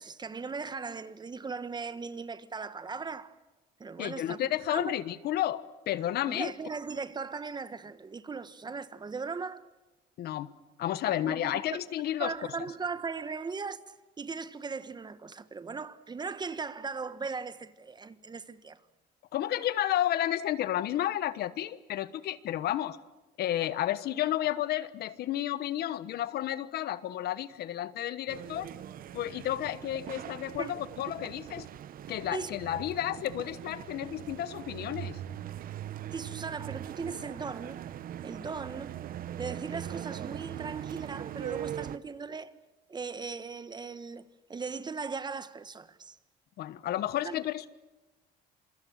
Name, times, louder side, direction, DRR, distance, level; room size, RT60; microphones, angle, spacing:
voice 1, 0.0-3.3 3.8-4.4 4.7-5.0 6.3-9.6 11.0-11.8 12.2-18.8 30.6-30.7 32.3-32.5 36.1-37.8 38.2-39.0 39.4-42.5 42.9-46.2 47.2-47.4, right 4 dB, 25° right, 1.3 m, -38 dB
voice 2, 4.0-6.5 10.2-10.5 10.8-12.3 19.3-23.0 23.4-28.7 29.1-31.7 32.1-35.2 46.6-47.7, left 12 dB, 70° left, 1.2 m, -31 dB
sound 1, 28.3-42.0, right 11 dB, 60° right, 0.9 m, -41 dB
27.0 x 24.0 x 7.6 m
cardioid pair, 110°, 17 cm